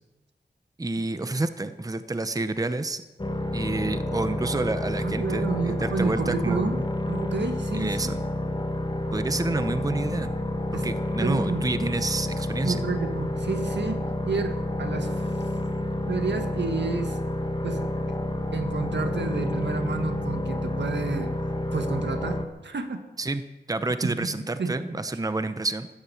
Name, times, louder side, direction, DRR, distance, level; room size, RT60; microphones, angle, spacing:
voice 1, 0.8-3.0 3.5-6.8 7.7-8.2 9.1-10.3 10.8-12.8 23.2-23.4 23.7-25.9, right 2 dB, 20° right, 11 dB, 0.8 m, -29 dB
sound 1, 3.2-22.5, left 1 dB, 25° left, 1.4 m, -29 dB
voice 2, 5.0-8.1 10.7-10.9 11.2-11.7 12.6-15.2 16.1-17.2 17.6-18.2 18.5-21.3 21.7-23.1 24.0-24.3 24.6-24.8, right 4 dB, 80° right, 7 dB, 1.7 m, -30 dB
16.0 x 11.5 x 7.1 m, 1.1 s
wide cardioid pair, 80°, 18 cm